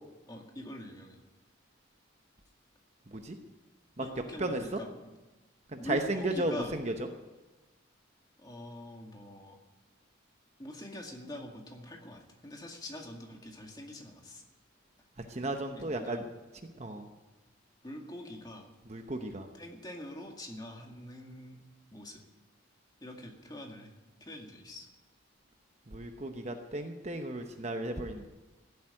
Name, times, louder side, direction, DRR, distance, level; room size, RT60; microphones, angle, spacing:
voice 1, 0.3-1.2 4.0-5.1 5.8-6.7 8.4-9.6 10.6-14.4 15.8-16.2 17.8-18.7 19.5-21.6 21.9-22.2 23.0-23.9 24.2-24.9, left 1 dB, 20° left, 2 dB, 2.0 m, -44 dB
voice 2, 4.4-4.8 5.7-6.9 15.3-16.2 16.8-17.1 18.9-19.5 25.9-28.3, right 1 dB, 35° right, 5 dB, 0.9 m, -34 dB
16.0 x 8.3 x 10.0 m, 1.1 s
head